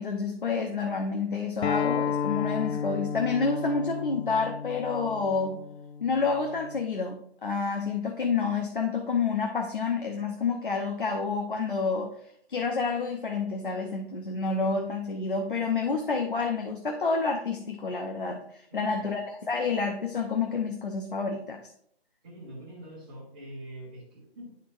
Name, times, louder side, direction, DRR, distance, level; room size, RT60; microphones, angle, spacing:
voice 1, 0.0-5.6 6.0-12.1 12.5-21.7, left 4 dB, 55° left, 3 dB, 0.9 m, -29 dB
Acoustic guitar, 1.6-6.8, left 7 dB, 85° left, 0.6 m, -32 dB
voice 2, 18.7-19.1 22.2-24.6, right 1 dB, 10° right, -8 dB, 1.3 m, -44 dB
11.5 x 4.1 x 2.6 m, 0.67 s
hypercardioid pair, 175°, 31 cm